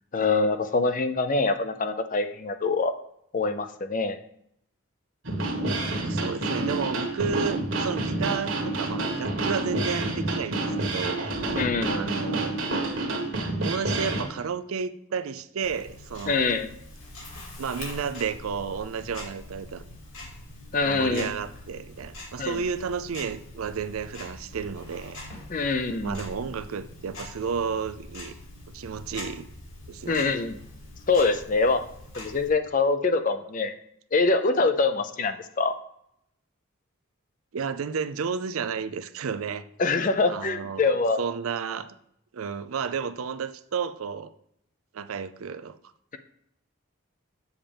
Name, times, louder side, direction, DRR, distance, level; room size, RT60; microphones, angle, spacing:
voice 1, 0.1-2.9 3.3-4.2 11.6-12.2 16.3-16.7 20.7-21.3 22.4-22.6 25.5-26.2 30.1-30.6 31.1-31.8 32.1-33.7 34.1-35.7 39.8-41.2, left 3 dB, 40° left, 9 dB, 0.5 m, -24 dB
sound 1, 5.2-14.2, right 2 dB, 60° right, 1.5 m, -28 dB
voice 2, 6.0-11.2 11.9-12.6 13.6-16.4 17.6-19.8 20.8-25.2 26.0-28.3 28.7-29.5 29.9-30.4 37.5-39.7 40.3-40.9 41.2-42.0 42.3-44.3 44.9-45.8, right 6 dB, 80° right, 12 dB, 0.5 m, -32 dB
Tick-tock, 15.6-32.5, left 1 dB, 70° left, 2.7 m, -43 dB
7.2 x 7.2 x 3.4 m, 0.74 s
head